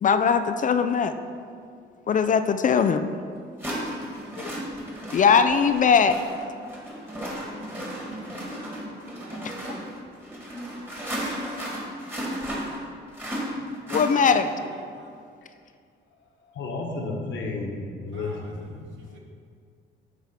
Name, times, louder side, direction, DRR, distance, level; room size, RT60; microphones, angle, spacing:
voice 1, 0.0-1.1 2.1-3.1 4.4-4.5 5.1-6.2 9.4-9.5 13.9-14.5, left 6 dB, 40° left, 9 dB, 0.4 m, -20 dB
sound 1, 2.7-2.8 3.6-14.7, equal, 10° right, 1.8 m, -34 dB
voice 2, 8.0-9.5 14.9-15.1 18.1-18.7 19.0-19.2, right 2 dB, 70° right, -1 dB, 1.5 m, -51 dB
voice 3, 16.5-18.9, left 3 dB, 70° left, 1 dB, 1.3 m, -32 dB
9.0 x 3.6 x 5.7 m, 2.2 s
cardioid pair, 90°, 20 cm